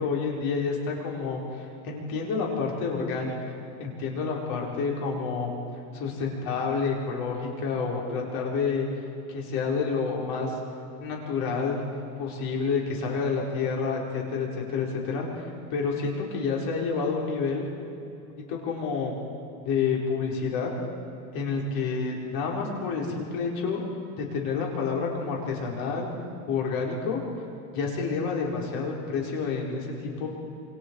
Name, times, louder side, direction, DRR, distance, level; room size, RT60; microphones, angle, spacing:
voice 1, 0.0-3.5 3.8-5.5 5.9-8.9 9.3-10.6 11.0-11.8 12.2-17.7 18.4-19.2 19.7-20.7 21.3-23.8 24.2-26.1 26.5-27.2 27.7-30.3, left 5 dB, 55° left, -2 dB, 5.2 m, -29 dB
27.0 x 27.0 x 4.9 m, 2.8 s
supercardioid pair, 135°, 42 cm